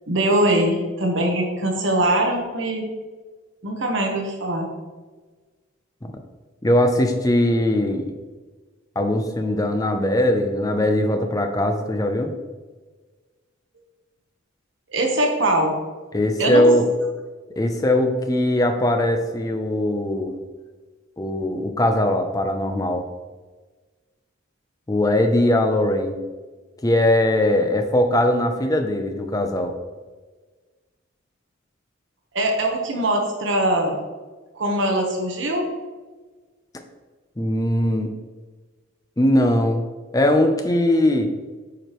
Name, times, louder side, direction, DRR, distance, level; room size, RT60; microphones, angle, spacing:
voice 1, 0.1-2.9 3.6-4.7 14.9-15.7 16.4-16.7 32.3-34.0 34.6-35.7, right 1 dB, 65° right, 1 dB, 1.2 m, -22 dB
voice 2, 6.6-8.1 9.0-12.3 16.1-16.9 17.6-20.3 21.2-23.0 24.9-26.2 26.8-29.7 37.4-38.1 39.2-39.8 40.1-41.3, left 1 dB, 20° left, 5 dB, 0.6 m, -20 dB
8.9 x 4.9 x 3.1 m, 1.3 s
head